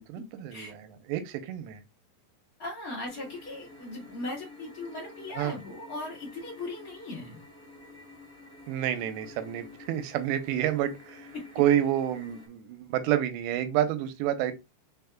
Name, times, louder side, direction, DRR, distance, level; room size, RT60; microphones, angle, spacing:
voice 1, 0.1-1.8 5.4-5.6 8.7-14.5, right 11 dB, 85° right, 2.7 m, -29 dB
voice 2, 2.6-7.4 11.3-11.4, left 2 dB, 60° left, 0.9 m, -38 dB
sound 1, 3.1-12.5, left 2 dB, 25° left, 1.3 m, -50 dB
5.6 x 4.1 x 2.3 m
omnidirectional pair, 4.9 m